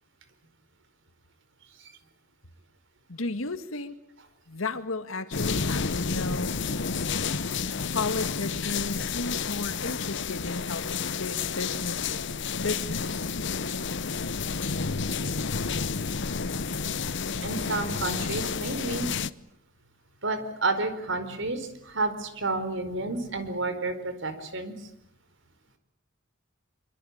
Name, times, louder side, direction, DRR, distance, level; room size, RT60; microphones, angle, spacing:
voice 1, 3.1-4.0 4.5-6.6 7.9-12.2 12.6-13.3, left 3 dB, 80° left, 10 dB, 1.9 m, -34 dB
sound 1, 5.3-19.3, left 5 dB, 60° left, 1.0 m, -30 dB
voice 2, 17.4-19.1 20.2-24.7, right 3 dB, 65° right, 10 dB, 4.6 m, -30 dB
25.5 x 24.5 x 8.8 m, 0.77 s
head